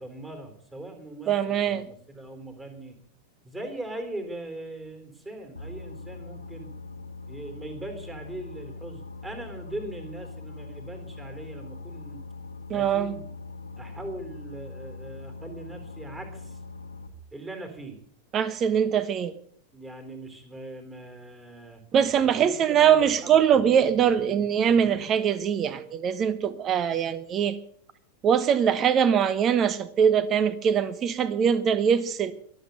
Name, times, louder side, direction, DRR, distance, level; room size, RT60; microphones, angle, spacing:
voice 1, 0.0-3.0 3.4-6.7 7.3-12.2 12.7-13.2 13.8-16.6 17.3-18.0 19.7-21.8 22.2-23.3, right 2 dB, 15° right, 3.9 m, -40 dB
voice 2, 1.3-1.8 12.7-13.1 18.3-19.3 21.9-27.6 28.2-32.3, right 8 dB, 30° right, 1.2 m, -22 dB
Boat Water vehicle, 5.6-17.1, left 3 dB, 80° left, 1.5 m, -42 dB
22.0 x 8.1 x 6.9 m
figure-of-eight pair, 90°, 0 cm